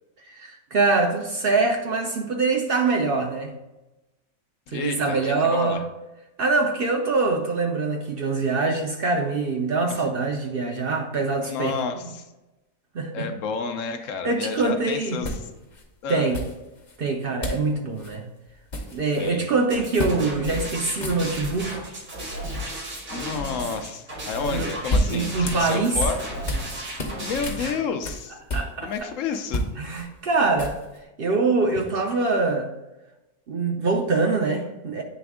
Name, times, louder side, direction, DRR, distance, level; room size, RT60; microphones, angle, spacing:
voice 1, 0.2-3.5 4.7-5.8 6.4-11.7 12.9-13.3 14.2-15.2 16.1-16.4 17.0-18.2 18.9-21.8 23.1-23.4 24.5-24.7 25.1-26.0 28.5-28.9 29.8-30.8 31.2-32.7 33.5-35.0, right 3 dB, 55° right, 3 dB, 0.7 m, -24 dB
voice 2, 4.7-5.8 9.9-10.0 11.4-12.3 13.1-15.3 16.0-16.3 19.2-19.4 23.1-26.2 27.2-28.4 28.8-29.7, left 5 dB, 70° left, 7 dB, 0.9 m, -30 dB
sound 1, 14.5-14.7 15.2-15.8 16.3-17.0 17.4-17.7 18.0-18.2 18.5-19.4 20.0-20.2 20.5-20.6 20.9-21.6 24.5-26.7 27.0-29.0 29.3-31.0, left 1 dB, 40° left, 0.9 m, -30 dB
sound 2, 19.7-27.7, equal, 80° right, 2.2 m, -34 dB
8.6 x 3.4 x 3.5 m, 1.0 s
omnidirectional pair, 1.4 m